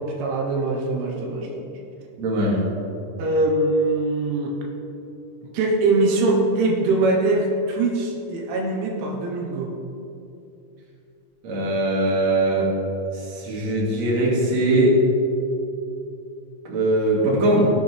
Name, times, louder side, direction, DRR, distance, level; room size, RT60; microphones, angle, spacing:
voice 1, 0.0-1.6 3.2-4.6 5.5-9.7, right 2 dB, 80° right, 0 dB, 3.4 m, -22 dB
voice 2, 2.2-2.6 11.4-12.7 13.3-15.0 16.6-17.7, right 1 dB, 45° right, -5 dB, 2.7 m, -20 dB
17.0 x 8.5 x 3.4 m, 2.7 s
omnidirectional pair, 5.5 m